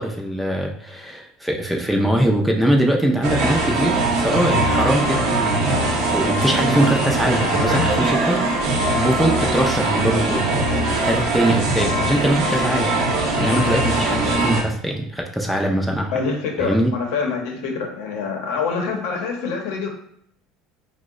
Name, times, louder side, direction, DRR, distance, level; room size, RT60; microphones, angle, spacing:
voice 1, 0.0-5.7 6.1-8.4 9.0-10.4 11.0-12.9 13.4-16.1 16.6-16.9, right 1 dB, ahead, 1 dB, 0.4 m, -22 dB
sound 1, 3.2-14.6, right 2 dB, 60° right, 0.7 m, -21 dB
voice 2, 16.1-19.9, left 5 dB, 75° left, 1 dB, 0.7 m, -25 dB
2.9 x 2.0 x 3.6 m, 0.68 s
supercardioid pair, 130°, 0 cm